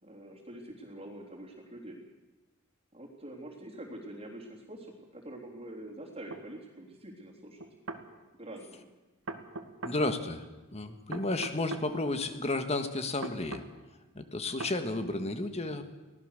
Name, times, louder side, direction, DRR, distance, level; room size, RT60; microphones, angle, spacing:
voice 1, 0.0-2.0 2.9-7.6 8.4-8.9, right 1 dB, 30° right, -1 dB, 3.5 m, -45 dB
sound 1, 6.3-6.4 7.6-8.1 9.3-10.0 11.1-11.9 13.2-13.7 14.6-14.8, right 3 dB, 75° right, 1.9 m, -40 dB
voice 2, 9.8-10.4 10.7-13.6 14.1-15.9, left 2 dB, 30° left, 8 dB, 1.7 m, -32 dB
24.0 x 17.5 x 6.7 m, 1.1 s
head